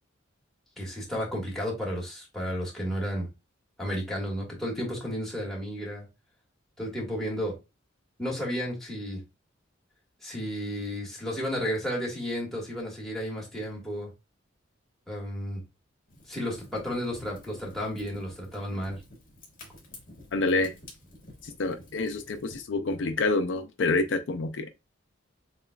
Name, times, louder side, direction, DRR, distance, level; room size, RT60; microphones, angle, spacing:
voice 1, 0.8-3.3 3.8-6.0 6.8-7.5 8.2-9.2 10.2-14.1 15.1-15.6 16.3-19.0, equal, ahead, 1.6 m, -32 dB
Fire, 16.1-22.6, left 1 dB, 45° left, 1.7 m, -50 dB
voice 2, 20.3-20.7 21.4-24.7, left 3 dB, 65° left, 0.4 m, -27 dB
6.9 x 2.3 x 2.3 m
head